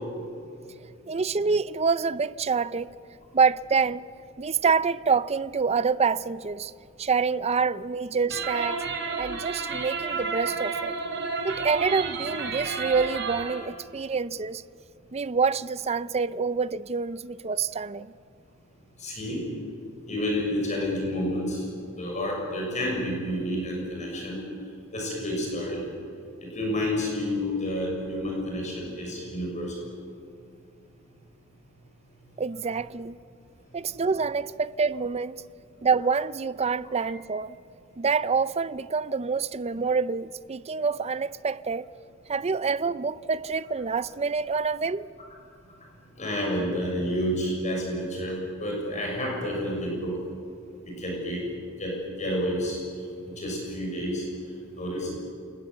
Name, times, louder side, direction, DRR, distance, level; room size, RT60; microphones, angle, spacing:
voice 1, 1.1-2.9 3.3-4.1 4.4-6.7 7.0-8.8 9.2-10.9 11.4-14.6 15.1-18.1 32.4-33.2 33.7-35.4 35.8-37.6 38.0-41.9 42.3-45.1, right 5 dB, 30° right, 0.5 m, -26 dB
sound 1, 8.3-13.7, right 4 dB, 60° right, 3.1 m, -31 dB
voice 2, 19.0-19.4 20.1-21.6 22.0-24.4 24.9-25.8 26.5-29.9 46.2-50.1 51.0-51.4 51.8-51.9 52.2-52.8 53.3-54.2 54.8-55.1, left 1 dB, 35° left, 6.8 m, -29 dB
28.0 x 20.5 x 8.0 m
head